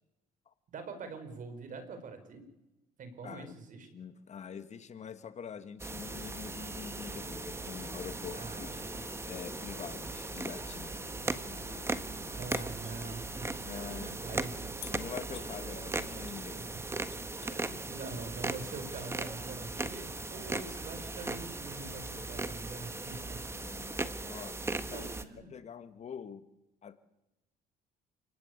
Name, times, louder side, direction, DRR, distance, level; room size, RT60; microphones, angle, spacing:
voice 1, 0.7-2.4 3.0-3.9 8.3-9.1 10.7-11.1 11.8-12.0 12.3-14.5 15.7-15.8 16.5-16.6 17.4-23.5 24.9-25.5, right 4 dB, 50° right, 9 dB, 5.7 m, -45 dB
voice 2, 3.2-3.6 3.9-8.8 9.3-10.9 11.2-12.5 13.7-16.6 23.5-25.1 25.5-26.5 26.8-27.0, left 7 dB, 40° left, 11 dB, 1.8 m, -46 dB
sound 1, 5.8-25.2, right 2 dB, 15° right, 1.6 m, -38 dB
sound 2, 5.9-13.6, left 4 dB, 25° left, 2.4 m, -54 dB
sound 3, 12.5-13.0 14.8-15.5 16.3-16.5 16.8-17.7 19.0-19.1, left 18 dB, 85° left, 0.9 m, -49 dB
29.0 x 18.5 x 8.3 m, 0.95 s
cardioid pair, 110°, 17 cm